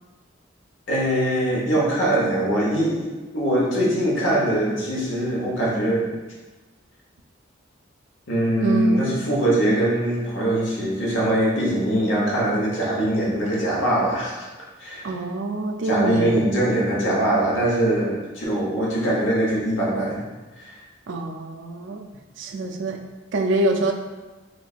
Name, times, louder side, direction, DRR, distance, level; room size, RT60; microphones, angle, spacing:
voice 1, 0.9-6.1 8.3-14.4 14.8-15.1 15.8-20.2 20.6-20.7, right 1 dB, 85° left, -5 dB, 1.0 m, -22 dB
voice 2, 8.6-9.0 15.0-16.4 21.1-22.0 22.4-23.0 23.3-23.9, right 2 dB, 70° right, 3 dB, 0.4 m, -25 dB
3.2 x 3.2 x 2.4 m, 1.2 s
head